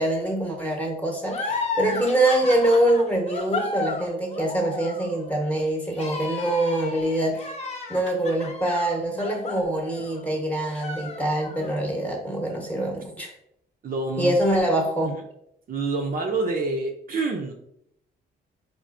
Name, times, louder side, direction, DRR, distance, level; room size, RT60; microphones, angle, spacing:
voice 1, 0.0-7.5 7.9-13.3 14.2-15.1, right 1 dB, 5° left, 0 dB, 0.9 m, -24 dB
sound 1, 1.3-10.3 10.7-11.7, left 3 dB, 30° left, 0.7 m, -33 dB
voice 2, 13.8-14.4 15.1-15.2 15.7-17.5, right 3 dB, 45° right, 2 dB, 0.5 m, -27 dB
4.2 x 2.5 x 2.5 m, 0.74 s
cardioid pair, 90°, 20 cm